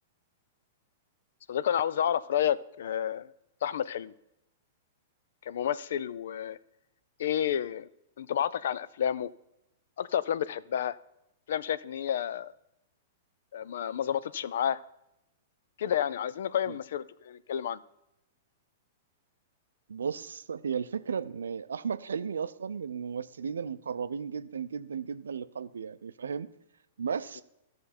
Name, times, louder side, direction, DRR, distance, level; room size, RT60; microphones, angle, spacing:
voice 1, 1.5-3.3 3.6-4.1 5.5-6.6 7.2-7.9 8.2-9.3 10.0-11.0 11.5-12.5 13.5-14.8 15.8-17.8, left 9 dB, 65° left, 18 dB, 0.4 m, -30 dB
voice 2, 19.9-26.5 27.0-27.4, right 6 dB, 75° right, 14 dB, 0.5 m, -35 dB
13.0 x 6.6 x 4.3 m, 0.84 s
figure-of-eight pair, 105°, 0 cm